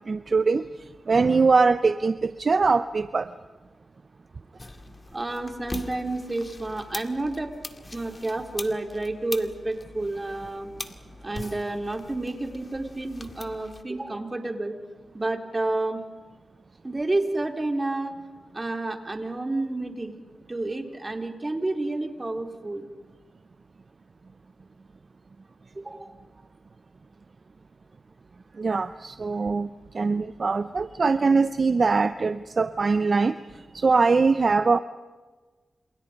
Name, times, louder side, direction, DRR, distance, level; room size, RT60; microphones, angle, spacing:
voice 1, 0.1-0.7 1.1-3.3 28.6-29.7 29.9-33.3 33.7-34.8, right 4 dB, 55° right, 12 dB, 0.8 m, -22 dB
sound 1, 4.6-13.8, left 2 dB, 35° left, 2.1 m, -42 dB
voice 2, 5.1-7.5 7.9-10.7 11.2-14.7 15.1-16.0 16.8-18.2 18.5-20.2 20.5-22.9 25.7-26.1, right 2 dB, 30° right, 4 dB, 4.2 m, -30 dB
30.0 x 28.5 x 5.4 m, 1.3 s
cardioid pair, 60°, 0 cm